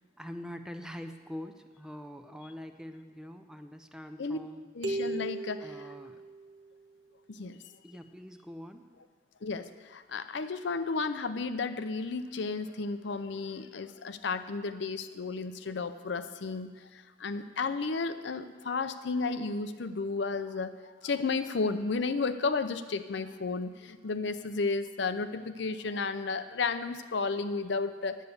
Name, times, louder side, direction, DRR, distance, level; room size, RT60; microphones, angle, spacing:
voice 1, 0.0-4.7 5.6-6.2 7.8-8.8, equal, 5° right, 7 dB, 0.4 m, -44 dB
voice 2, 4.8-5.9 7.3-7.6 9.4-28.2, left 4 dB, 65° left, 11 dB, 0.5 m, -33 dB
sound 1, 4.8-6.7, right 2 dB, 85° right, 1.4 m, -36 dB
10.0 x 8.2 x 6.9 m, 1.5 s
head